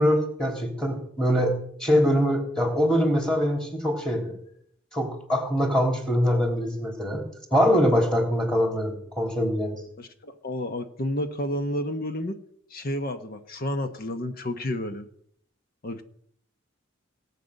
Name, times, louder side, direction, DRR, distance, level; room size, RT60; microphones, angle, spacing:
voice 1, 0.0-4.3 4.9-7.2 7.5-9.8, equal, 5° left, 2 dB, 3.4 m, -23 dB
voice 2, 10.0-12.4 12.7-15.1 15.8-16.0, left 1 dB, 45° left, 7 dB, 1.1 m, -30 dB
18.5 x 8.5 x 6.5 m, 0.67 s
head